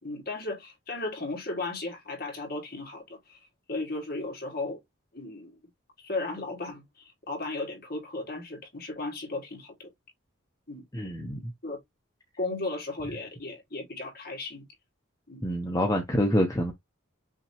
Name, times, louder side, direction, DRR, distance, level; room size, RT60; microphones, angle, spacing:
voice 1, 0.0-3.4 3.7-4.8 5.1-5.6 6.0-9.9 10.7-10.8 11.6-11.8 12.4-14.7 15.3-15.4, left 2 dB, 45° left, 2.0 m, -35 dB
voice 2, 10.9-11.5 15.4-16.7, equal, 15° left, 0.7 m, -26 dB
5.9 x 2.9 x 2.9 m
head